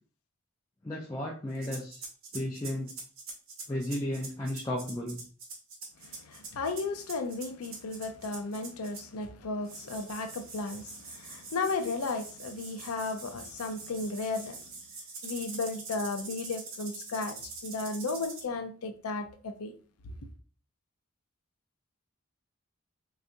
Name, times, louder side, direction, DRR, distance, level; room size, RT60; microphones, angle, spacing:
voice 1, 0.8-2.0 2.3-2.9 3.7-5.2, left 1 dB, 15° left, 0.4 m, -34 dB
sound 1, 1.6-9.2 9.6-18.4, right 3 dB, 70° right, 0.8 m, -44 dB
voice 2, 6.0-14.6 15.2-19.7, left 3 dB, 85° left, 0.5 m, -34 dB
3.9 x 2.3 x 2.6 m
head